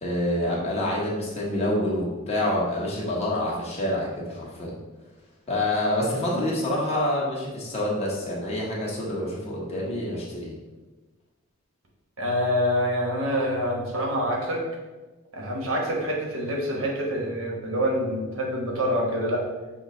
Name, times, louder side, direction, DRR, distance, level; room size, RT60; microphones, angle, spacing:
voice 1, 0.0-4.7 5.5-10.5, left 1 dB, 30° left, -4 dB, 1.0 m, -27 dB
voice 2, 12.2-14.6 15.3-19.4, equal, 85° right, -2 dB, 1.1 m, -26 dB
6.3 x 2.1 x 3.7 m, 1.2 s
head